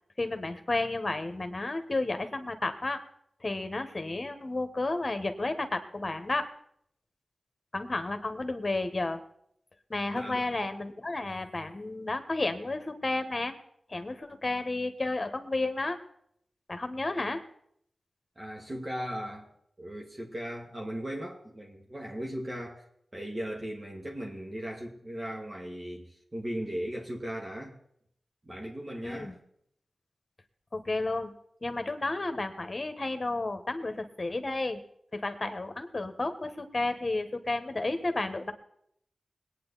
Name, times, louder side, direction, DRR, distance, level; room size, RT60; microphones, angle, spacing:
voice 1, 0.2-3.0 3.4-6.5 7.7-9.2 9.9-13.5 13.9-16.0 16.7-17.4 29.0-29.3 30.7-31.3 31.6-34.8 35.1-38.5, left 2 dB, 40° left, 8 dB, 1.5 m, -32 dB
voice 2, 10.1-10.5 18.4-19.5 19.8-22.9 23.1-27.8 28.5-29.4, equal, 35° right, -1 dB, 2.2 m, -37 dB
21.5 x 9.3 x 4.2 m, 0.69 s
cardioid pair, 60°, 0 cm